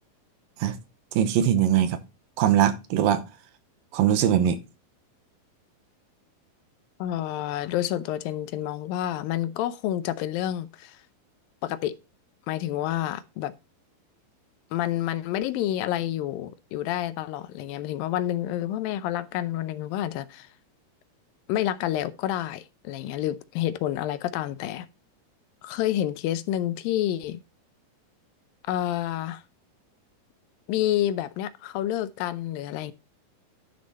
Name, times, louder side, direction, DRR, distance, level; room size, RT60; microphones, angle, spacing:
voice 1, 1.1-2.0 2.4-3.2 3.9-4.6, right 10 dB, 75° right, 2.7 m, -21 dB
voice 2, 7.0-11.0 11.6-12.0 12.5-13.5 14.7-20.5 21.5-24.9 25.6-27.4 28.7-29.4 30.7-32.9, left 12 dB, 80° left, 2.4 m, -29 dB
12.0 x 6.4 x 4.1 m
omnidirectional pair, 4.2 m